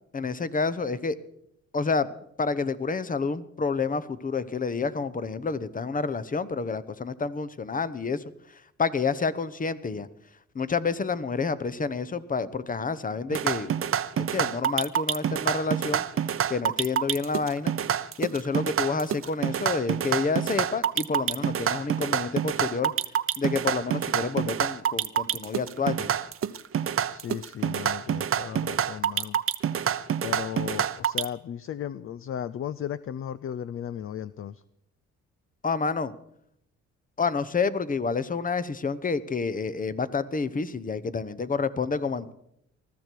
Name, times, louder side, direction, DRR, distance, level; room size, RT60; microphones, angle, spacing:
voice 1, 0.1-1.2 1.7-2.1 2.4-8.2 8.5-10.1 10.5-13.7 14.2-16.0 16.5-17.7 18.2-22.9 23.4-26.1 35.6-36.1 37.2-42.3, left 4 dB, 25° left, 15 dB, 1.0 m, -29 dB
sound 1, 13.3-31.2, right 9 dB, 45° right, 0.7 m, -27 dB
voice 2, 27.1-29.4 30.2-34.6, left 9 dB, 45° left, 16 dB, 0.5 m, -35 dB
20.0 x 14.0 x 4.6 m, 0.74 s
cardioid pair, 90°, 30 cm